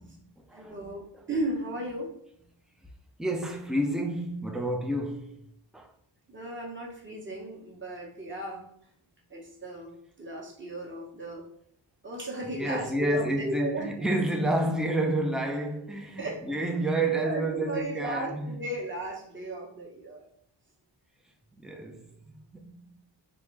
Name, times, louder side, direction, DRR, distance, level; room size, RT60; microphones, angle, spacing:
voice 1, 0.0-0.8 3.2-5.9 12.4-18.6 21.5-22.9, right 1 dB, ahead, 0.4 m, -30 dB
voice 2, 0.5-2.1 6.3-8.6 9.3-11.4 12.0-13.9 16.2-16.5 17.2-20.2, right 2 dB, 25° right, 1.0 m, -35 dB
3.6 x 2.6 x 3.1 m
wide cardioid pair, 105°, 48 cm